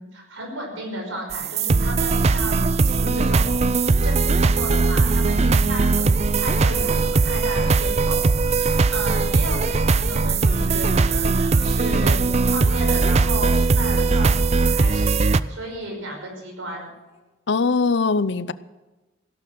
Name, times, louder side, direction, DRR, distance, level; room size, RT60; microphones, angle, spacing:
voice 1, 0.0-2.6 2.8-3.6 4.0-8.2 8.6-12.2 12.4-16.9, right 1 dB, 85° right, 5.7 m, -34 dB
sound 1, 1.3-15.4, right 3 dB, 30° right, 0.4 m, -19 dB
Crying sobbing, 5.2-12.2 12.5-13.3 13.5-14.0 14.5-15.9 16.2-16.4 16.7-17.2, left 4 dB, 30° left, 1.7 m, -48 dB
voice 2, 17.5-18.5, left 4 dB, 60° left, 0.6 m, -21 dB
16.5 x 12.0 x 6.3 m
head